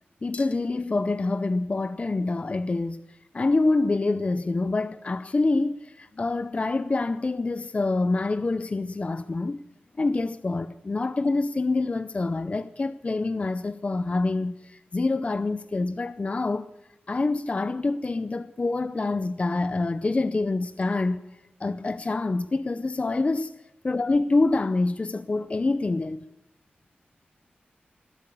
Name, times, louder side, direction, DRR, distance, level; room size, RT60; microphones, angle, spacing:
voice 1, 0.2-3.0 3.3-9.6 10.0-16.7 17.1-21.2 21.6-23.5 23.8-26.2, left 3 dB, 35° left, 0.5 m, -26 dB
19.5 x 8.3 x 8.5 m
wide cardioid pair, 95°, 4 cm